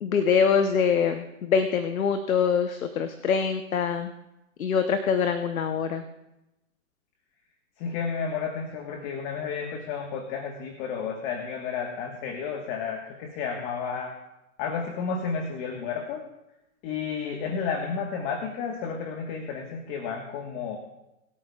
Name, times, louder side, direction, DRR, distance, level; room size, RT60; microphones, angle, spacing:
voice 1, 0.0-4.1 4.6-6.0, left 6 dB, 80° left, 8 dB, 1.0 m, -24 dB
voice 2, 7.8-14.1 14.6-16.2 16.8-20.8, left 6 dB, 35° left, 3 dB, 1.4 m, -32 dB
24.5 x 8.6 x 2.4 m, 0.92 s
hypercardioid pair, 125°, 41 cm